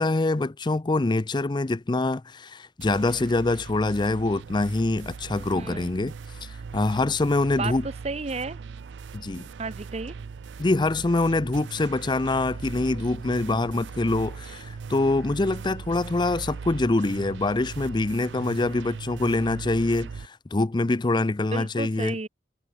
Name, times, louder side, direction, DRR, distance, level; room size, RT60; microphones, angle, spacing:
voice 1, 0.0-6.1 6.4-7.8 9.1-9.4 10.6-22.2, left 2 dB, 25° left, 0.5 m, -25 dB
sound 1, 2.8-20.3, right 5 dB, 75° right, 0.4 m, -39 dB
voice 2, 5.6-5.9 7.5-8.6 9.6-10.1 21.5-22.3, right 3 dB, 35° right, 0.9 m, -32 dB
head